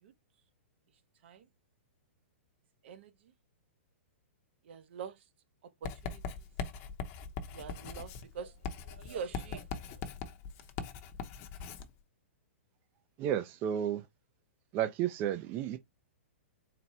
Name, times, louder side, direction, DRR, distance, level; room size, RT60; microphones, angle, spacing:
voice 1, 2.8-3.3 4.6-5.2 5.6-6.4 7.5-10.1, right 6 dB, 60° right, 0.8 m, -45 dB
Writing, 5.8-11.9, left 5 dB, 35° left, 0.7 m, -41 dB
voice 2, 13.2-14.0 14.7-15.8, right 10 dB, 30° right, 0.4 m, -32 dB
4.2 x 2.1 x 4.1 m
hypercardioid pair, 145°, 7 cm